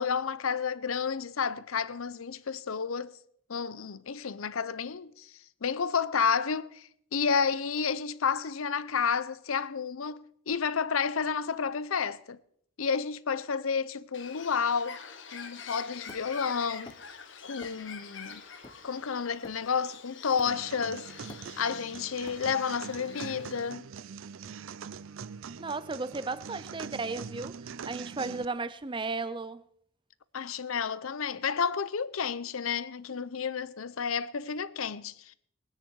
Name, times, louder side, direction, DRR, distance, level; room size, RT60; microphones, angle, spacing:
voice 1, 0.0-3.1 3.5-12.4 12.8-15.0 15.3-17.0 17.4-18.4 18.8-21.1 21.6-23.9 30.3-35.3, left 6 dB, 85° left, 0.7 m, -31 dB
Bird, 14.1-23.7, left 6 dB, 60° left, 1.3 m, -46 dB
Hammer, 16.1-17.2 17.6-18.0 18.3-19.9 20.4-20.8 21.1-22.8, left 1 dB, 20° left, 0.9 m, -51 dB
sound 1, 20.5-28.4, right 6 dB, 75° right, 0.5 m, -43 dB
voice 2, 25.6-27.6 27.9-29.6, right 3 dB, 25° right, 0.5 m, -34 dB
20.5 x 9.9 x 4.7 m
head